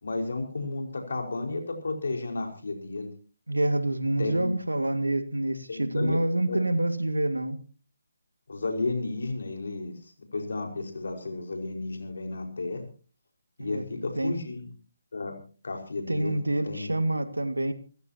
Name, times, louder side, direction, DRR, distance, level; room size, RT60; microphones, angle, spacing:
voice 1, 0.0-3.1 4.2-4.6 5.7-6.2 6.5-6.6 8.5-12.8 13.6-14.7 15.1-15.4 15.6-17.0, left 3 dB, 65° left, 3 dB, 5.1 m, -33 dB
voice 2, 3.5-7.6 13.6-13.8 14.2-14.3 16.1-17.7, right 1 dB, 85° right, 10 dB, 2.0 m, -27 dB
27.5 x 15.0 x 2.9 m, 0.38 s
figure-of-eight pair, 145°, 0 cm